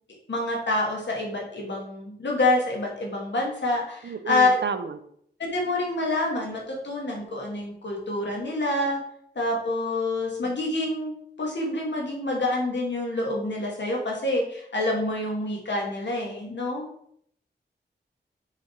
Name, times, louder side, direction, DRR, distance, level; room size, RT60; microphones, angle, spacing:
voice 1, 0.3-4.6 5.4-9.0 9.4-11.1 11.4-16.9, left 2 dB, 75° left, -2 dB, 2.3 m, -27 dB
voice 2, 4.0-5.0 10.4-10.5, right 6 dB, 80° right, 10 dB, 0.7 m, -31 dB
7.3 x 4.3 x 4.6 m, 0.68 s
wide cardioid pair, 90°, 18 cm